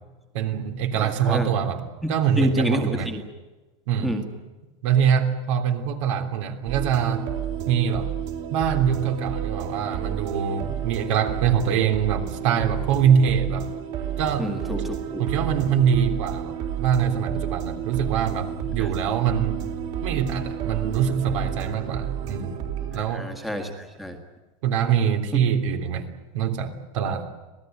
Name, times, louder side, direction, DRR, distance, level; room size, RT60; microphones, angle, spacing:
voice 1, 0.3-3.1 3.9-4.1 4.8-7.2 7.7-8.1 8.5-13.7 14.2-14.5 15.2-19.6 20.0-22.6 22.9-23.3 24.6-26.1 26.3-27.3, right 8 dB, 65° right, 6 dB, 3.4 m, -24 dB
voice 2, 1.0-1.5 2.0-3.2 4.0-4.3 14.4-15.2 18.8-18.9 22.9-24.2, equal, ahead, 3 dB, 1.9 m, -28 dB
sound 1, 6.7-23.0, right 9 dB, 45° right, 4.0 m, -31 dB
26.0 x 18.5 x 9.3 m, 1.2 s
supercardioid pair, 170°, 17 cm